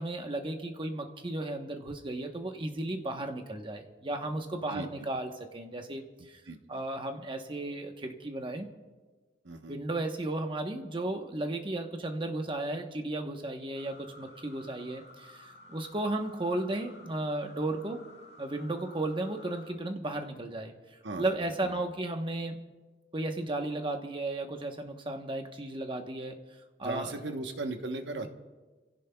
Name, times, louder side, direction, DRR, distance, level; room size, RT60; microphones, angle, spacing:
voice 1, 0.0-6.4 6.7-8.7 9.7-18.0 18.4-20.7 21.2-22.6 23.1-26.4 26.8-27.1 28.2-28.3, right 2 dB, 30° right, 4 dB, 1.0 m, -34 dB
voice 2, 4.7-5.1 6.2-6.8 9.4-9.8 21.0-21.2 21.6-21.8 26.8-28.3, right 2 dB, 75° right, 5 dB, 1.1 m, -38 dB
sound 1, 13.7-19.7, left 2 dB, 65° left, 1.8 m, -53 dB
29.0 x 16.0 x 2.3 m, 1.3 s
head